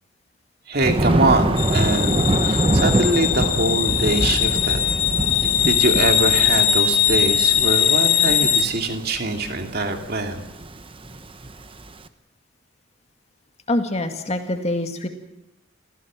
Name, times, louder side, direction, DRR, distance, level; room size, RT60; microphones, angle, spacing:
voice 1, 0.7-4.8 5.6-10.4, right 2 dB, 45° right, 4 dB, 2.6 m, -23 dB
Thunder, 0.8-11.9, right 1 dB, 25° right, 0.9 m, -24 dB
sound 1, 1.6-8.6, left 9 dB, 75° left, 2.3 m, -20 dB
voice 2, 13.7-15.1, left 1 dB, 30° left, 5 dB, 2.0 m, -24 dB
27.5 x 16.0 x 7.5 m, 0.92 s
head